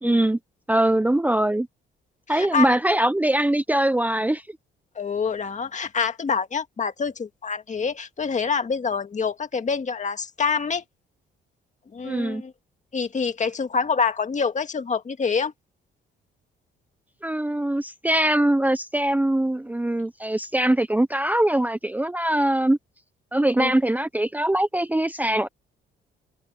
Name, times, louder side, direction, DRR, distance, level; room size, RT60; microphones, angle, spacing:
voice 1, 0.0-0.4 0.7-1.7 2.3-4.5 12.0-12.4 17.2-22.8 23.3-25.5, right 1 dB, 10° right, 0.9 m, -22 dB
voice 2, 2.3-2.7 5.0-10.8 11.9-12.5 12.9-15.5 23.6-23.7, left 5 dB, 40° left, 2.0 m, -26 dB
open air
cardioid pair, 90°, 20 cm